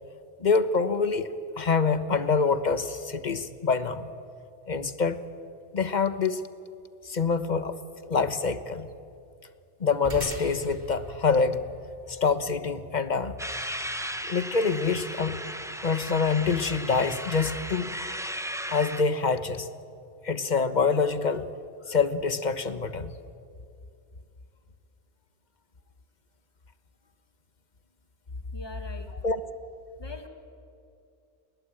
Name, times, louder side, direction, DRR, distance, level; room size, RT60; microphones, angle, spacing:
voice 1, 0.4-4.1 4.7-5.2 5.7-6.5 7.0-7.8 8.1-8.9 9.8-11.6 12.1-13.3 14.2-15.4 15.8-17.9 18.7-19.7 20.2-21.5 21.9-23.1 29.2-29.4, left 5 dB, 40° left, 11 dB, 1.2 m, -26 dB
sound 1, 10.0-18.7, equal, 40° right, 2.9 m, -46 dB
sound 2, 13.4-19.0, equal, 5° right, 0.9 m, -36 dB
voice 2, 28.5-29.1 30.0-30.3, left 2 dB, 20° left, 5 dB, 2.2 m, -42 dB
29.5 x 21.5 x 8.9 m, 2.5 s
omnidirectional pair, 1.2 m